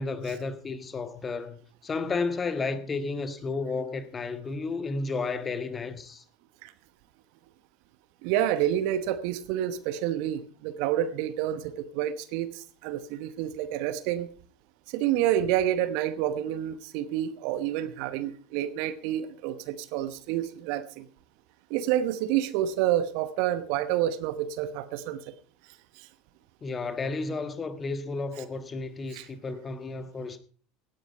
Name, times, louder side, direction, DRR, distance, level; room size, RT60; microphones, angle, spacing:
voice 1, 0.0-6.2 26.6-30.4, left 3 dB, 25° left, 1.5 m, -32 dB
voice 2, 8.2-14.3 14.9-21.1 21.7-25.3 26.0-26.1 29.1-29.3, right 11 dB, 60° right, 1.0 m, -28 dB
17.0 x 9.4 x 4.7 m
figure-of-eight pair, 75°, 0 cm